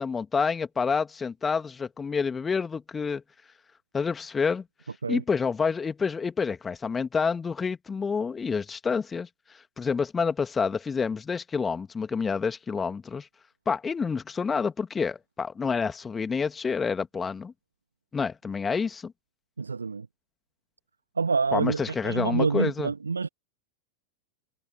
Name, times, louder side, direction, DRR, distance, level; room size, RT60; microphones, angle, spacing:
voice 1, 0.0-3.2 3.9-4.6 5.1-9.3 9.8-13.3 13.7-17.5 18.1-19.1 21.5-22.9, left 5 dB, 15° left, 2.3 m, -28 dB
voice 2, 19.6-20.1 21.2-23.3, right 4 dB, 75° right, 0.5 m, -27 dB
figure-of-eight pair, 90°, 0 cm